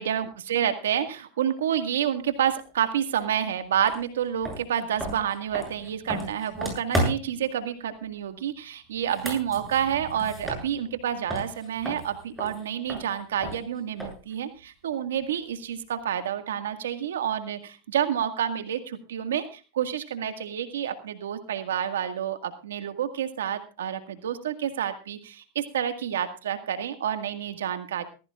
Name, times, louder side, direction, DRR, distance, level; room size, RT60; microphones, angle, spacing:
voice 1, 0.0-28.0, right 9 dB, 90° right, 8 dB, 1.8 m, -29 dB
sound 1, 3.9-4.0 4.4-7.4 8.9-11.0 11.3-14.3, right 1 dB, ahead, 7.8 m, -33 dB
19.5 x 16.0 x 2.5 m, 0.33 s
supercardioid pair, 125°, 0 cm